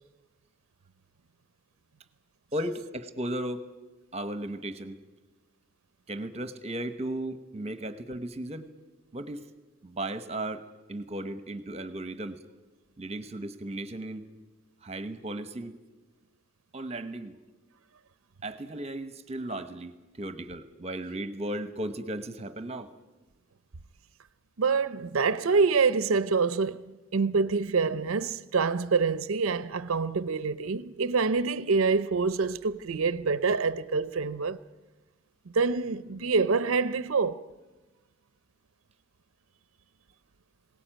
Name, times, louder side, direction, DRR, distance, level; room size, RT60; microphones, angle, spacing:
voice 1, 2.5-3.7 4.1-5.0 6.1-8.7 9.1-9.4 9.8-12.4 13.0-14.3 14.8-15.7 16.7-17.4 18.4-22.9, right 1 dB, 30° right, 1.0 m, -35 dB
voice 2, 24.6-34.6 35.5-37.4, right 4 dB, 90° right, 0.6 m, -26 dB
21.0 x 18.0 x 9.0 m
head